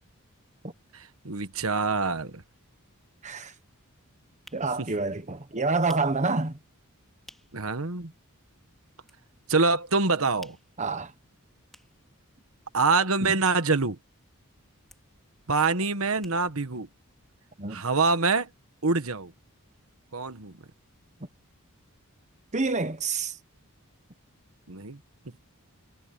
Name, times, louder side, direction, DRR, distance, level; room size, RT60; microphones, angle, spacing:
voice 1, 0.9-2.4 4.8-4.9 7.5-8.1 9.5-10.6 12.7-14.0 15.5-16.9 17.7-18.5 18.8-19.3 20.1-20.5 24.7-25.0, right 4 dB, 70° right, 1.4 m, -25 dB
voice 2, 3.2-3.5 4.5-6.6 10.8-11.1 13.2-13.3 17.6-17.8 22.5-23.4, right 3 dB, 30° right, 1.2 m, -28 dB
sound 1, 4.4-7.7 8.0-8.1 8.4-9.6 9.9-14.4 14.7-16.8 17.1-17.2 17.4-17.5, equal, ahead, 4.7 m, -55 dB
head